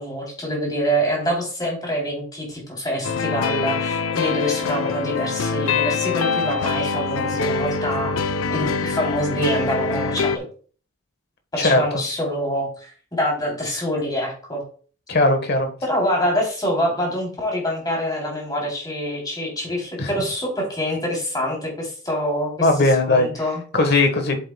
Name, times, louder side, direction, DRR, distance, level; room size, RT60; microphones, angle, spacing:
voice 1, 0.0-10.5 11.6-14.6 15.8-22.7 23.1-23.6, equal, 20° left, -1 dB, 3.1 m, -25 dB
sound 1, 3.0-10.4, left 5 dB, 85° left, 0.6 m, -24 dB
voice 2, 11.6-12.0 15.1-15.7 20.0-20.1 22.6-23.3 23.7-24.4, left 2 dB, 50° left, 6 dB, 1.3 m, -18 dB
7.9 x 7.8 x 2.2 m, 0.42 s
head